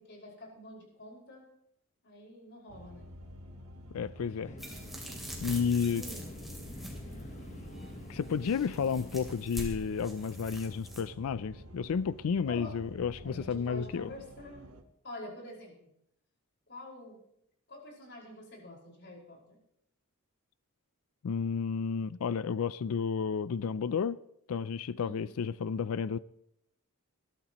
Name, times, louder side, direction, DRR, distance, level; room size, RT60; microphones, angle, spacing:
voice 1, 0.0-1.5 2.0-3.1 5.9-6.3 12.5-12.7 13.2-14.7 15.0-15.9 16.7-17.2 17.7-19.6 25.0-25.3, left 1 dB, 50° left, 5.2 m, -47 dB
sound 1, 2.7-14.8, equal, 85° right, 1.4 m, -50 dB
voice 2, 3.9-4.5 5.4-6.0 8.1-14.1 21.2-24.2 24.5-26.2, left 6 dB, 80° left, 0.4 m, -32 dB
sound 2, 4.4-9.4, left 1 dB, 35° left, 1.2 m, -47 dB
sound 3, 4.6-11.0, right 1 dB, ahead, 2.5 m, -45 dB
21.5 x 13.0 x 3.0 m
head